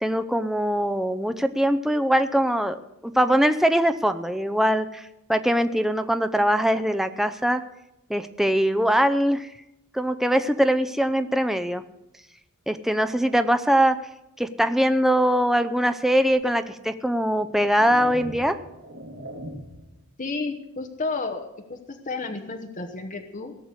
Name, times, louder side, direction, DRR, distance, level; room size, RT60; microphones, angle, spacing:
voice 1, 0.0-2.8 3.0-5.0 5.3-7.6 8.1-9.5 9.9-11.8 12.7-14.0 14.4-18.6, equal, ahead, 10 dB, 0.5 m, -22 dB
sound 1, 16.3-16.4 17.2-19.9, equal, 80° right, 2.5 m, -40 dB
voice 2, 20.2-23.5, left 3 dB, 35° left, 5 dB, 1.1 m, -32 dB
17.5 x 6.7 x 7.9 m, 0.90 s
head